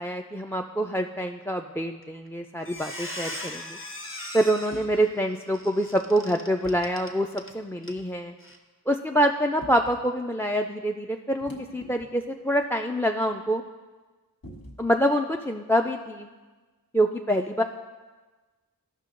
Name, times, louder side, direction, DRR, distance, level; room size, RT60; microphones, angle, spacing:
voice 1, 0.0-3.8 4.3-8.3 8.9-13.6 14.8-16.3 16.9-17.6, equal, 5° left, 5 dB, 0.3 m, -26 dB
Squeak, 2.0-2.3 2.6-7.5 7.8-8.0 8.4-8.6, left 1 dB, 35° left, 1.0 m, -39 dB
sound 1, 2.8-3.0 4.7-5.0 6.6-6.9 8.0-8.2 9.6-10.0 11.4-12.3 12.6-12.7 14.4-15.0, left 1 dB, 75° left, 1.4 m, -44 dB
13.0 x 5.8 x 3.8 m, 1.3 s
wide cardioid pair, 40°, 36 cm